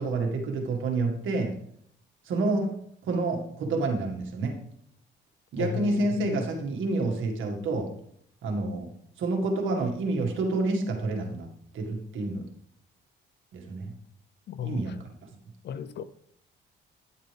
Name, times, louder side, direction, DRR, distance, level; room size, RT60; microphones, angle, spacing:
voice 1, 0.0-1.6 2.3-4.6 5.5-8.0 8.4-12.5 13.5-13.9 14.6-15.0, right 2 dB, 80° right, 1.9 m, -29 dB
voice 2, 5.6-6.4 14.5-15.0 15.6-16.0, left 9 dB, 60° left, 0.6 m, -35 dB
10.5 x 7.6 x 3.4 m
cardioid pair, 90°, 20 cm